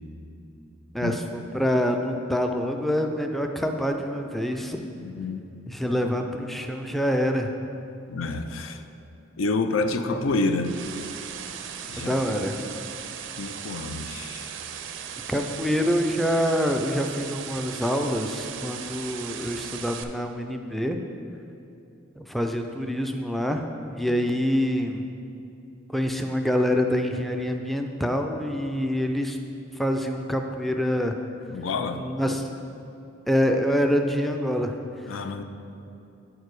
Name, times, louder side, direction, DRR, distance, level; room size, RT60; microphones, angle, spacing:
voice 1, 0.9-4.9 5.7-7.5 12.0-12.6 15.3-21.0 22.2-25.0 25.9-29.4 29.8-31.1 32.0-32.6 33.3-34.8 35.1-35.2, equal, ahead, 4 dB, 0.3 m, -26 dB
voice 2, 5.0-5.5 8.1-8.8 9.4-10.8 11.9-12.1 13.4-14.6 31.5-32.0 35.1-35.4, left 3 dB, 85° left, 8 dB, 0.5 m, -28 dB
sound 1, 10.2-20.0, right 8 dB, 70° right, 0.4 m, -37 dB
8.7 x 4.7 x 4.7 m, 2.7 s
head